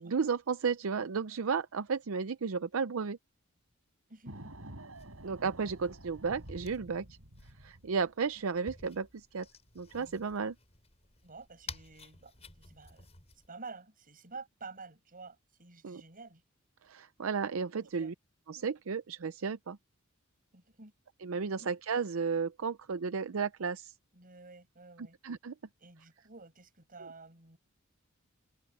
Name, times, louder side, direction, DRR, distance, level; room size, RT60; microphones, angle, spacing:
voice 1, 0.0-3.2 5.2-7.1 7.6-9.5 9.8-10.5 15.8-16.0 16.8-18.1 18.5-19.8 21.2-23.9 25.0-25.5, right 5 dB, 75° right, 0.6 m, -33 dB
voice 2, 4.1-4.5 11.2-13.1 13.5-16.4 18.0-18.1 20.5-20.9 21.6-21.7 24.1-25.2 25.8-27.6, right 4 dB, 45° right, 6.8 m, -50 dB
sound 1, 4.3-8.0, right 1 dB, 90° right, 6.6 m, -49 dB
sound 2, 4.9-13.5, left 4 dB, 30° left, 7.1 m, -53 dB
head